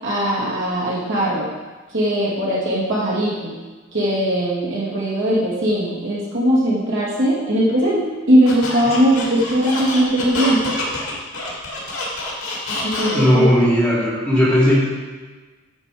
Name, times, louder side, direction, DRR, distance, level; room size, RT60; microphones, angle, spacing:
voice 1, 0.0-1.5 1.9-3.5 3.9-10.7 12.8-13.4, equal, 60° right, -6 dB, 2.6 m, -19 dB
Squeak, 8.4-13.5, left 2 dB, 80° left, 2.5 m, -27 dB
voice 2, 13.1-14.8, equal, 5° left, -9 dB, 3.4 m, -16 dB
9.7 x 7.0 x 5.0 m, 1.3 s
head